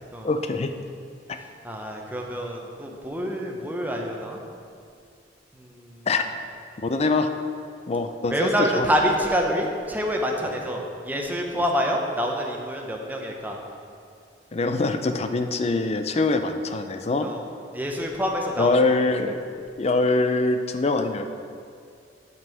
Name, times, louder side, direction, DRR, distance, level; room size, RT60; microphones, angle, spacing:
voice 1, 0.2-0.7 1.3-1.4 6.1-6.3 6.8-7.3 7.9-8.9 11.5-11.6 14.5-17.3 18.6-21.3, left 3 dB, 35° left, 7 dB, 0.5 m, -24 dB
voice 2, 1.6-4.4 5.5-6.1 8.3-13.6 17.2-17.4 17.7-18.7 19.1-19.2, equal, 10° right, 0 dB, 0.9 m, -27 dB
8.0 x 5.5 x 6.3 m, 2.3 s
head